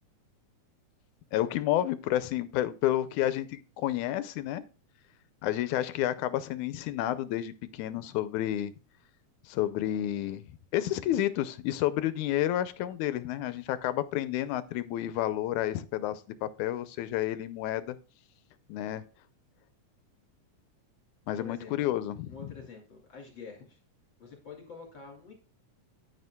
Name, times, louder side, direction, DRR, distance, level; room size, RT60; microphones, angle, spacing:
voice 1, 1.3-4.6 5.4-8.7 9.5-10.4 10.7-18.0 18.7-19.0 21.3-22.4, left 13 dB, 80° left, 13 dB, 1.9 m, -30 dB
voice 2, 21.4-21.7 22.3-23.8 24.2-25.3, left 5 dB, 40° left, 1 dB, 2.8 m, -47 dB
9.6 x 9.4 x 2.2 m, 0.36 s
omnidirectional pair, 3.6 m